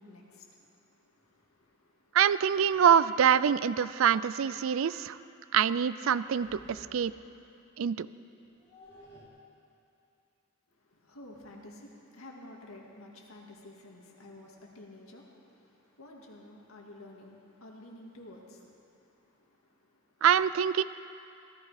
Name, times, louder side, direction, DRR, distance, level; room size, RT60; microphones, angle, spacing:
voice 1, 0.0-2.2 10.7-20.2, left 1 dB, 90° left, -1 dB, 2.0 m, -52 dB
sound 1, 1.2-1.4 2.6-2.7 3.1-3.2 3.6-3.8 6.1-7.4 8.3-9.3, equal, 50° left, 2.9 m, -56 dB
voice 2, 2.1-5.2 5.5-7.1 7.8-8.1 20.2-20.8, right 8 dB, 70° right, 16 dB, 0.4 m, -25 dB
16.5 x 14.5 x 4.9 m, 2.7 s
head